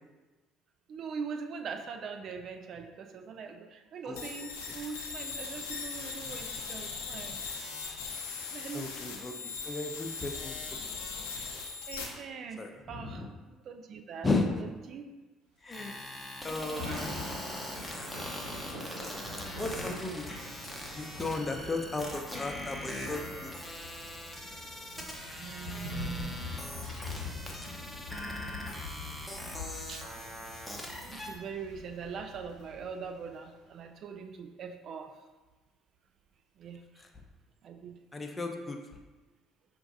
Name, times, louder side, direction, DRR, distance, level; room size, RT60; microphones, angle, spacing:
voice 1, 0.9-7.4 8.5-9.2 9.4-9.5 11.9-14.3 14.6-15.1 25.4-26.7 29.9-30.1 30.6-30.7 31.1-35.1 36.6-36.8 37.6-38.0, right 5 dB, 55° right, 6 dB, 0.3 m, -42 dB
sound 1, 4.2-12.0, left 5 dB, 80° left, 0.6 m, -39 dB
voice 2, 8.7-10.6 12.6-13.3 14.2-14.6 15.6-16.0 16.4-17.1 19.6-20.2 20.9-23.5 38.1-38.8, left 3 dB, 25° left, 4 dB, 0.6 m, -35 dB
sound 2, 15.7-31.4, left 1 dB, ahead, 0.9 m, -42 dB
Thunder / Rain, 15.9-33.4, left 2 dB, 90° right, 1.1 m, -44 dB
5.6 x 2.6 x 2.6 m, 1.2 s
hypercardioid pair, 60°, 0 cm